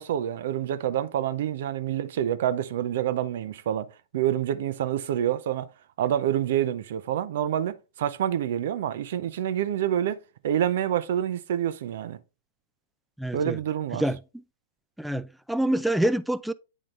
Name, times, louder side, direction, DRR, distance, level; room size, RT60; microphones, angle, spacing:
voice 1, 0.0-5.7 6.0-10.2 10.4-12.2 13.3-14.0, right 10 dB, 60° right, 0.6 m, -27 dB
voice 2, 13.2-13.6 14.0-14.2 15.0-16.5, right 1 dB, ahead, 0.4 m, -26 dB
9.1 x 3.8 x 3.2 m
hypercardioid pair, 110°, 0 cm